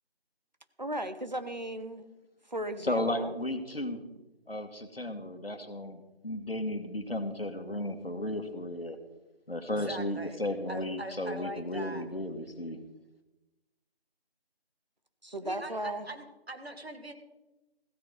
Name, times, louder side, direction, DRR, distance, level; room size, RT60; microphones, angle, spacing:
voice 1, 0.8-2.1 2.5-3.3 15.2-16.1, right 1 dB, 45° right, 10 dB, 1.0 m, -36 dB
voice 2, 2.8-4.0 4.5-9.0 9.5-12.8, left 1 dB, 65° left, 8 dB, 1.9 m, -34 dB
voice 3, 9.7-10.4 10.7-12.0 15.4-17.1, right 1 dB, 75° right, 6 dB, 2.1 m, -41 dB
15.5 x 13.5 x 4.0 m, 1.0 s
figure-of-eight pair, 170°, 31 cm